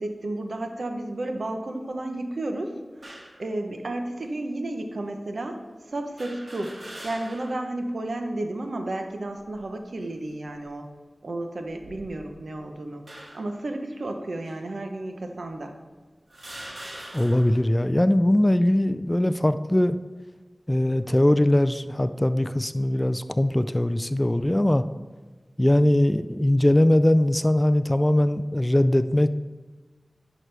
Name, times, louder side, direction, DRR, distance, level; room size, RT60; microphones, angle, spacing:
voice 1, 0.0-2.8 3.4-5.6 5.9-6.8 7.0-10.9 11.2-13.0 13.3-15.7, right 2 dB, 80° right, 4 dB, 0.8 m, -32 dB
sound 1, 3.0-3.4 4.2-4.3 6.2-7.6 8.1-8.2 9.3-9.7 10.4-10.7 11.6-12.4 13.1-13.6 14.4-14.6 15.5-15.6 16.3-17.6, right 1 dB, 65° right, 1.8 m, -43 dB
voice 2, 17.1-20.0 20.7-24.8 25.6-29.3, left 1 dB, 20° left, 12 dB, 0.3 m, -21 dB
11.0 x 6.2 x 3.4 m, 1.3 s
wide cardioid pair, 50°, 0 cm